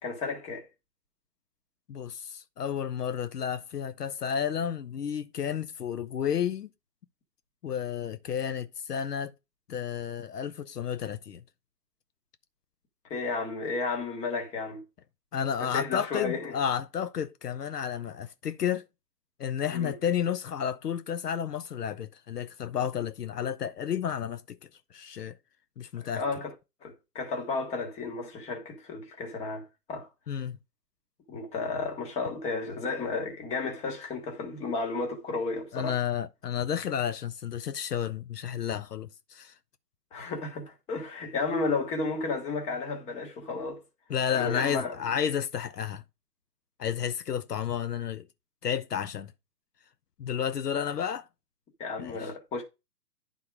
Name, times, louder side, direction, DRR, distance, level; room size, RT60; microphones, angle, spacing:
voice 1, 0.0-0.7 13.1-14.8 15.6-16.5 19.7-20.0 25.9-26.5 26.8-30.1 31.3-36.0 40.1-43.8 44.3-45.0 51.8-52.6, left 3 dB, 15° left, 1.2 m, -33 dB
voice 2, 1.9-6.7 7.6-9.3 9.7-11.4 15.3-18.8 19.4-24.6 24.9-25.4 25.8-26.2 30.3-30.6 35.7-39.5 44.1-46.0 46.8-48.3 48.6-49.3 50.2-51.3 52.0-52.3, left 8 dB, 75° left, 0.7 m, -31 dB
9.9 x 3.8 x 4.7 m
figure-of-eight pair, 130°, 48 cm